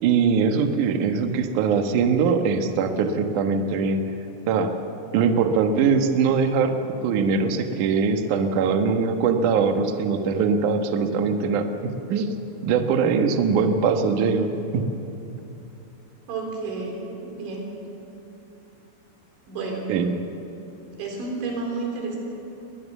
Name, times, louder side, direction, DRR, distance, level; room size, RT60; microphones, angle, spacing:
voice 1, 0.0-4.0 4.5-4.7 5.1-6.7 7.0-12.3 12.6-14.8 19.9-20.1, right 5 dB, 85° right, 5 dB, 1.7 m, -22 dB
voice 2, 16.3-17.7 19.5-19.9 21.0-22.2, right 3 dB, 70° right, 0 dB, 6.0 m, -31 dB
22.0 x 19.5 x 7.2 m, 2.9 s
omnidirectional pair, 5.6 m